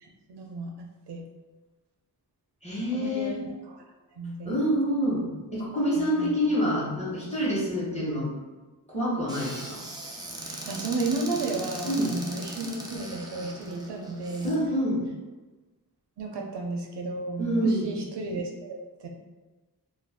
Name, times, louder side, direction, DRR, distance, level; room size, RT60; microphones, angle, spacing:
voice 1, 0.0-1.3 2.9-3.8 4.2-4.6 6.0-6.3 10.4-14.6 16.2-19.1, right 3 dB, 85° right, 2 dB, 0.5 m, -33 dB
voice 2, 2.6-3.4 4.4-5.3 5.5-8.3 8.9-9.8 11.9-12.2 14.4-15.0 17.4-17.9, equal, 15° left, -7 dB, 1.0 m, -27 dB
Squeak / Cupboard open or close, 9.3-14.6, right 1 dB, 10° right, 0.5 m, -39 dB
2.4 x 2.2 x 3.4 m, 1.2 s
wide cardioid pair, 95°, 39 cm